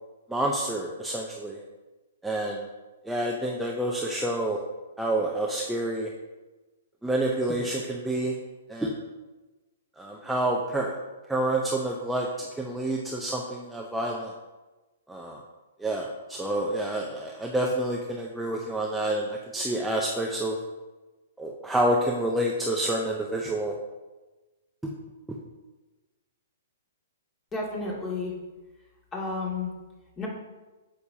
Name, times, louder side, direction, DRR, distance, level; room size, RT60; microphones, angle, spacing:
voice 1, 0.3-1.6 2.2-2.7 3.0-4.6 5.0-6.1 7.0-8.4 8.7-9.0 10.0-10.9 11.3-14.3 15.1-15.4 15.8-20.6 21.4-23.8 24.8-24.9, right 1 dB, 5° right, -1 dB, 0.7 m, -28 dB
voice 2, 27.5-28.3 29.1-29.7 30.2-30.3, left 3 dB, 20° left, -3 dB, 2.3 m, -31 dB
8.2 x 6.7 x 2.8 m, 1.2 s
hypercardioid pair, 120°, 0 cm